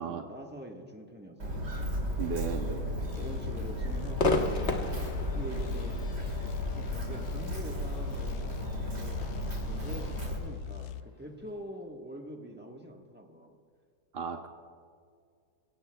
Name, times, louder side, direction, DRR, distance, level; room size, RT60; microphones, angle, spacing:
voice 1, 0.0-1.6 3.1-4.4 5.3-6.0 6.7-8.6 8.9-9.2 9.6-13.6, right 1 dB, 5° right, 1 dB, 1.1 m, -44 dB
Walk footsteps, 1.4-10.4, equal, 70° right, 3.4 m, -34 dB
voice 2, 2.2-2.8 14.1-14.5, right 6 dB, 50° right, 4 dB, 0.7 m, -35 dB
sound 1, 3.1-11.0, left 14 dB, 70° left, 0.9 m, -43 dB
Crowd / Fireworks, 4.2-11.5, left 2 dB, 40° left, 1.3 m, -36 dB
24.5 x 16.5 x 2.3 m, 2.1 s
omnidirectional pair, 1.8 m